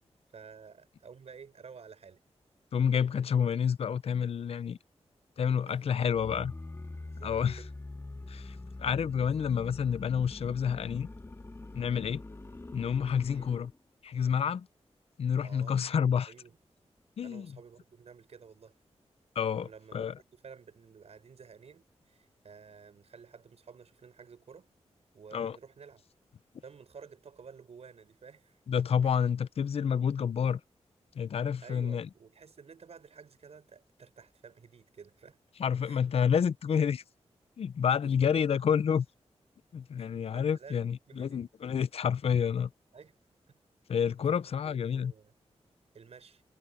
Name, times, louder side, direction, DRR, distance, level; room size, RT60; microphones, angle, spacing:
voice 1, 0.3-2.2 5.7-6.5 6.9-7.7 11.9-12.1 13.3-13.5 15.4-15.8 16.3-16.6 17.2-18.8 19.6-24.7 25.1-26.0 26.6-29.2 31.6-35.4 35.8-36.0 38.0-38.1 40.0-41.5 42.9-43.2 43.9-45.3 45.9-46.4, right 6 dB, 65° right, 5.6 m, -52 dB
voice 2, 2.7-4.8 5.4-6.5 7.2-7.6 8.3-11.1 11.7-12.2 12.7-13.7 14.0-14.7 15.2-16.3 17.2-17.5 19.4-20.1 25.3-25.6 28.7-30.6 31.2-32.1 35.6-37.0 37.6-39.1 39.7-42.7 43.9-45.1, left 7 dB, 60° left, 0.5 m, -29 dB
sound 1, 6.1-13.7, left 2 dB, 20° left, 1.8 m, -44 dB
wide cardioid pair, 115°, 11 cm